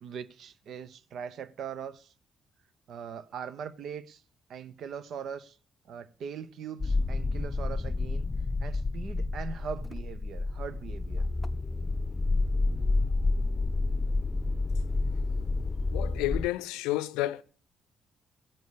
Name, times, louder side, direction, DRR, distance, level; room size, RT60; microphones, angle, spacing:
voice 1, 0.0-2.1 2.9-4.2 4.5-5.6 5.8-8.3 8.6-11.3, right 7 dB, 60° right, 0.8 m, -41 dB
sound 1, 6.8-16.5, left 3 dB, 20° left, 0.8 m, -29 dB
voice 2, 15.9-17.4, left 16 dB, 70° left, 0.6 m, -30 dB
16.0 x 9.3 x 6.9 m
figure-of-eight pair, 40°, 0 cm